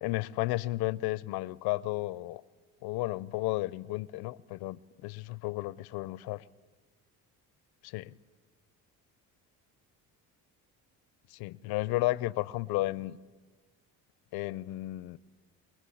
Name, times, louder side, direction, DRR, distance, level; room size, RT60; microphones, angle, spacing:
voice 1, 0.0-2.4 2.8-6.4 7.8-8.1 11.3-13.2 14.3-15.2, left 19 dB, 80° left, 0.6 m, -33 dB
23.5 x 21.5 x 8.5 m
supercardioid pair, 70°, 37 cm